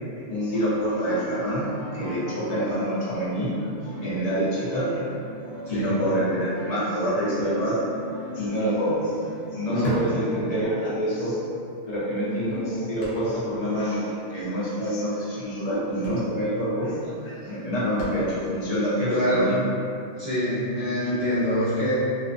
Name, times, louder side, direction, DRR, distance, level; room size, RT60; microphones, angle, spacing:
voice 1, 0.3-3.6 4.0-5.1 5.5-7.8 8.3-9.1 9.5-11.4 11.9-19.6, equal, 40° left, -9 dB, 0.6 m, -26 dB
sound 1, 0.7-10.7, left 1 dB, 15° right, 1.0 m, -38 dB
voice 2, 5.7-6.0 9.6-10.0 19.1-19.6 20.1-21.9, equal, 45° right, -13 dB, 0.6 m, -25 dB
sound 2, 8.2-8.3 8.5-11.1 11.4-11.5 12.1-13.7 13.9-14.0 14.3-14.5 15.4-15.5 15.8-18.7 19.2-19.3, equal, 75° left, 1.0 m, -36 dB
2.4 x 2.3 x 2.4 m, 2.6 s
omnidirectional pair, 1.3 m